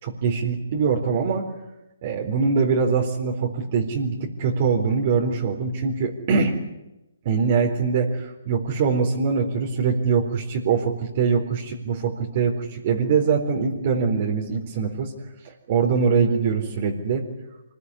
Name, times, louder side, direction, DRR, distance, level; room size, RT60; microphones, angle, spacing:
voice 1, 0.0-1.5 2.0-6.5 7.2-15.1 15.4-17.2, right 5 dB, 40° right, 1 dB, 4.1 m, -23 dB
24.5 x 20.5 x 10.0 m, 0.94 s
hypercardioid pair, 150°, 0 cm